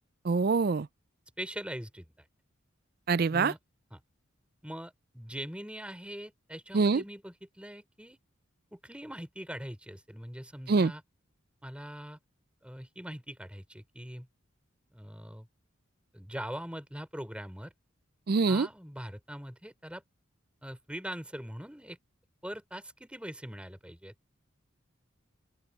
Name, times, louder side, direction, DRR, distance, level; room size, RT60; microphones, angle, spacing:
voice 1, 0.2-0.9 3.1-3.5 6.7-7.0 10.7-10.9 18.3-18.7, right 4 dB, 45° right, 0.4 m, -25 dB
voice 2, 1.4-2.1 3.3-3.6 3.9-4.0 4.6-8.2 8.7-11.0 11.6-12.2 12.6-14.3 14.9-15.5 16.1-17.7 18.5-20.0 20.6-22.0 22.4-24.1, equal, 5° right, 4.5 m, -42 dB
open air
head